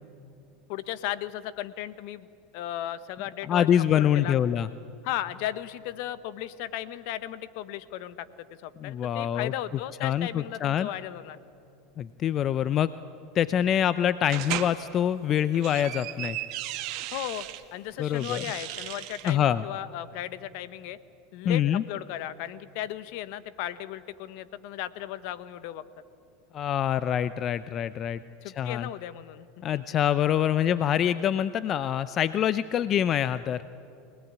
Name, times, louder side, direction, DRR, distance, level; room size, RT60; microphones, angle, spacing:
voice 1, 0.7-2.3 2.5-4.3 5.0-8.3 8.6-11.4 17.1-17.5 17.7-21.0 21.3-25.8 28.4-29.5 29.7-29.8, left 12 dB, 65° left, 15 dB, 1.0 m, -36 dB
voice 2, 3.4-4.7 8.8-9.5 10.0-10.9 12.0-12.9 13.3-16.4 18.0-18.4 19.3-19.6 21.4-21.8 26.5-28.2 28.6-28.9 29.6-33.6, left 10 dB, 40° left, 15 dB, 0.6 m, -25 dB
sound 1, 14.3-14.7 15.4-17.6 18.1-19.4, right 15 dB, 60° right, 1.6 m, -36 dB
24.5 x 18.5 x 9.6 m, 2.6 s
hypercardioid pair, 100°, 0 cm